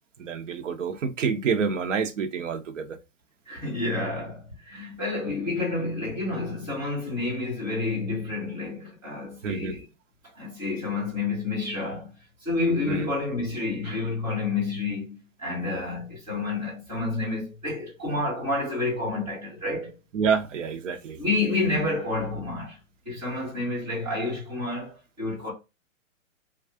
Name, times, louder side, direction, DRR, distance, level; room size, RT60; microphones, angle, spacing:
voice 1, 0.2-3.0 9.4-9.8 12.9-13.1 20.1-21.2, right 6 dB, 65° right, 0.8 m, -28 dB
voice 2, 3.4-9.8 10.3-12.1 12.4-20.0 21.2-22.8 23.0-25.5, left 3 dB, 15° right, 1.4 m, -29 dB
3.6 x 2.3 x 3.3 m
hypercardioid pair, 180°, 41 cm